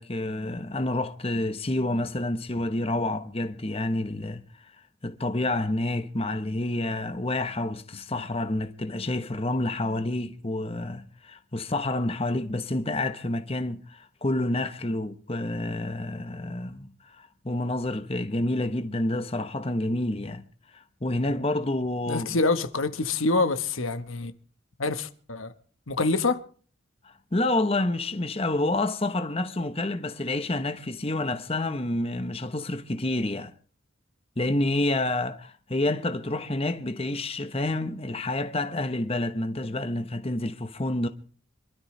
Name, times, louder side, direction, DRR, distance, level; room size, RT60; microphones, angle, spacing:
voice 1, 0.0-4.4 5.0-20.4 20.7-22.3 27.0-33.5 34.4-41.1, left 2 dB, 30° left, 1.0 m, -28 dB
voice 2, 22.1-24.3 24.8-25.5 25.9-26.4, left 3 dB, 80° left, 1.3 m, -26 dB
26.5 x 13.0 x 3.3 m
head